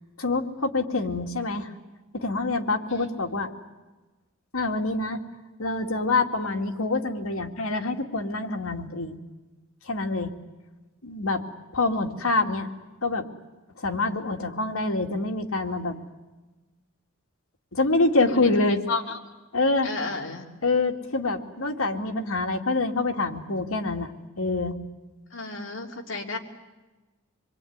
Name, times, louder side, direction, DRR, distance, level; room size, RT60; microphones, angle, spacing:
voice 1, 0.2-1.7 2.1-3.5 4.5-5.2 5.6-9.2 9.9-10.3 11.0-11.4 11.7-12.7 13.0-13.2 13.8-16.0 17.7-18.8 19.5-19.9 20.6-24.1 24.4-24.7, left 3 dB, 85° left, 3 dB, 2.5 m, -26 dB
voice 2, 18.9-19.2 19.8-20.4 25.3-26.4, left 3 dB, 60° left, 2 dB, 3.2 m, -32 dB
27.0 x 22.5 x 9.6 m, 1.2 s
head